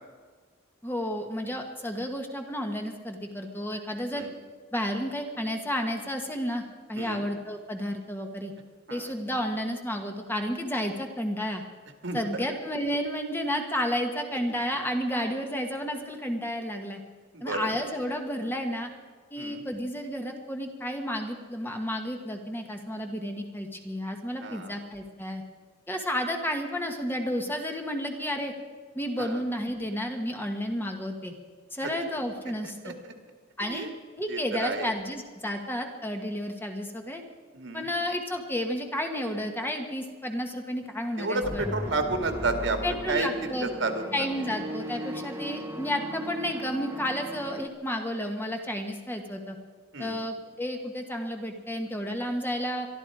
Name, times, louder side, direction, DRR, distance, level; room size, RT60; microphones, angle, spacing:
voice 1, 0.8-4.2 4.7-6.6 6.9-8.5 8.9-11.6 12.1-17.0 17.4-18.9 19.3-25.4 25.9-28.5 28.9-31.3 31.7-32.9 33.6-33.9 34.2-37.2 37.7-41.7 42.8-43.7 44.1-49.6 50.0-52.9, equal, 10° left, 4 dB, 1.4 m, -31 dB
voice 2, 12.0-12.4 17.3-17.7 19.4-19.6 24.4-24.8 29.2-29.4 31.8-31.9 32.5-32.9 33.6-33.9 34.3-34.9 37.5-37.9 41.2-43.4 43.6-44.3 49.9-50.2, right 3 dB, 70° right, 6 dB, 2.0 m, -31 dB
sound 1, 41.4-47.7, equal, 15° right, 1.1 m, -37 dB
23.0 x 13.0 x 4.9 m, 1.5 s
head